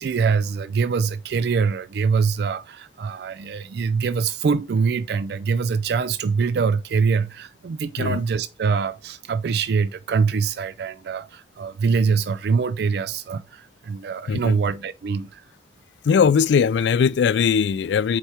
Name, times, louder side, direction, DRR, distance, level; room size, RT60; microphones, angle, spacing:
voice 1, 0.0-15.4, right 5 dB, 60° right, 0.3 m, -24 dB
voice 2, 14.3-14.6 16.0-18.2, left 6 dB, 75° left, 0.3 m, -19 dB
8.0 x 4.5 x 2.9 m
head